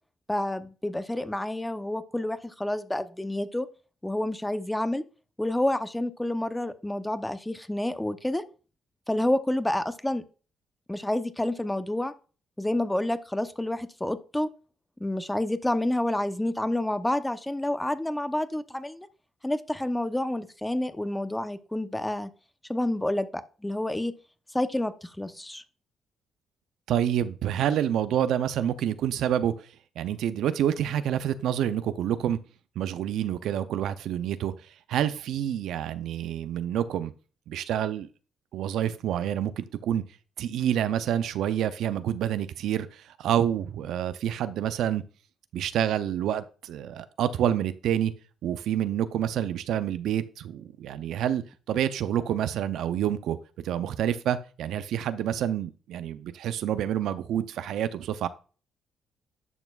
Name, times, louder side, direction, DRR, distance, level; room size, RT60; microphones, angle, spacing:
voice 1, 0.3-3.7 4.0-5.0 5.4-8.4 9.1-10.2 10.9-12.1 12.6-14.5 15.0-19.1 19.4-22.3 22.7-24.1 24.5-25.6, left 1 dB, 10° left, 0.8 m, -29 dB
voice 2, 26.9-29.5 30.0-32.4 32.8-34.5 34.9-37.1 37.5-38.1 38.5-40.0 40.4-45.0 45.5-48.1 48.4-53.4 53.6-58.3, right 10 dB, 80° right, 0.5 m, -28 dB
11.0 x 6.0 x 2.4 m
supercardioid pair, 70°, 0 cm